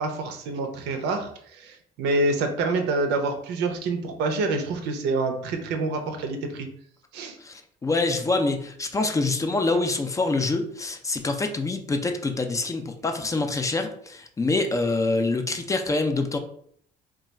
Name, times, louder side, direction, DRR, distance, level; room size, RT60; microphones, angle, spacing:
voice 1, 0.0-6.7 7.1-7.4, right 3 dB, 85° right, 5 dB, 0.6 m, -27 dB
voice 2, 7.4-16.4, left 3 dB, 20° left, 5 dB, 0.4 m, -25 dB
2.4 x 2.3 x 4.0 m, 0.64 s
cardioid pair, 110°, 17 cm